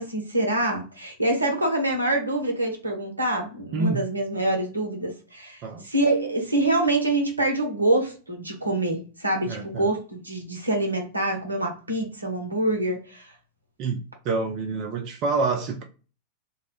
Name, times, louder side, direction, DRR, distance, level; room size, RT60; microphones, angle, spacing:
voice 1, 0.0-13.3, right 1 dB, 80° right, 0.6 m, -25 dB
voice 2, 9.5-9.9 13.8-15.8, right 3 dB, 40° right, 0.3 m, -27 dB
2.2 x 2.0 x 2.9 m
figure-of-eight pair, 90°, 0 cm